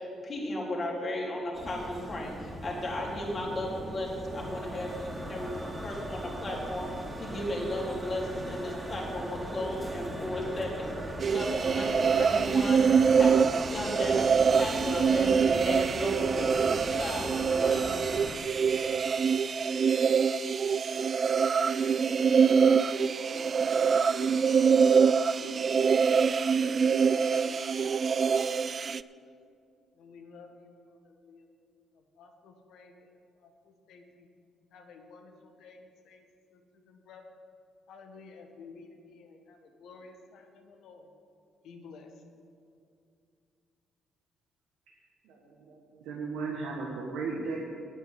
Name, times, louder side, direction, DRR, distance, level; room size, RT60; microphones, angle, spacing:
voice 1, 0.0-17.8, left 1 dB, 40° left, -2 dB, 3.5 m, -35 dB
sound 1, 1.5-18.4, right 1 dB, 20° right, 2.6 m, -39 dB
sound 2, 11.2-29.0, right 6 dB, 50° right, 0.3 m, -25 dB
voice 2, 22.5-24.5 24.8-26.0 26.6-28.3 28.6-29.3 29.9-31.5 31.9-34.3 34.7-36.2 36.5-37.4 37.9-41.1 41.6-42.2, left 4 dB, 75° left, 4 dB, 1.5 m, -53 dB
voice 3, 45.2-47.6, right 4 dB, 85° right, -2 dB, 1.6 m, -36 dB
9.7 x 8.5 x 8.1 m, 2.4 s
supercardioid pair, 60°, 0 cm